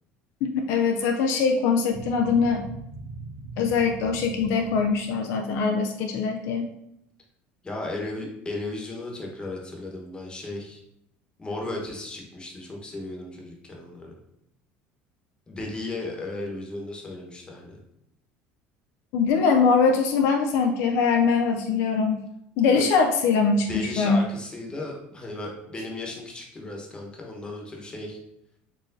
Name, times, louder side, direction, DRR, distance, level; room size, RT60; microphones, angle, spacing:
voice 1, 0.4-2.7 3.6-6.7 19.1-22.2 22.6-24.2, left 5 dB, 70° left, 3 dB, 0.4 m, -22 dB
sound 1, 1.9-5.3, right 3 dB, 90° right, 1.4 m, -40 dB
voice 2, 7.6-10.8 11.4-14.1 15.5-17.8 22.7-22.8 23.7-28.2, left 2 dB, 20° left, -1 dB, 1.0 m, -35 dB
4.4 x 3.0 x 2.6 m, 0.77 s
supercardioid pair, 100°, 5 cm